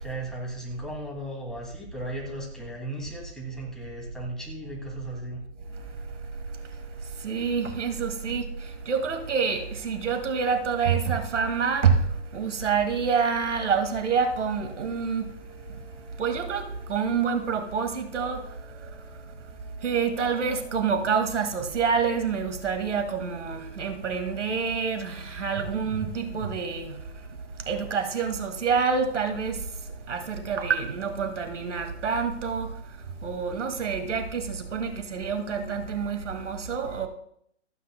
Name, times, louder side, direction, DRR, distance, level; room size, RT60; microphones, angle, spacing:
voice 1, 0.0-5.4, right 1 dB, ahead, 2.4 m, -36 dB
voice 2, 7.2-8.5 8.9-12.0 12.3-15.3 16.2-18.4 19.8-27.0 27.7-29.6 30.1-32.7 33.2-37.1, right 6 dB, 85° right, 2.1 m, -27 dB
27.0 x 9.3 x 2.2 m
hypercardioid pair, 150°, 35 cm